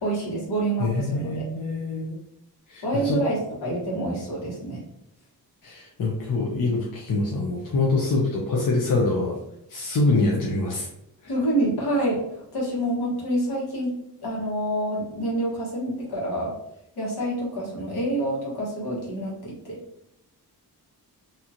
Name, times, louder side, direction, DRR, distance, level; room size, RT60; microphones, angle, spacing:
voice 1, 0.0-1.5 2.8-4.8 11.3-13.9 14.2-16.5 17.0-19.8, right 1 dB, 75° left, -5 dB, 1.4 m, -27 dB
voice 2, 0.8-2.2 2.7-3.2 5.6-9.4 9.7-10.9, left 3 dB, 55° left, -2 dB, 0.7 m, -25 dB
2.8 x 2.4 x 2.8 m, 0.81 s
cardioid pair, 65°, 40 cm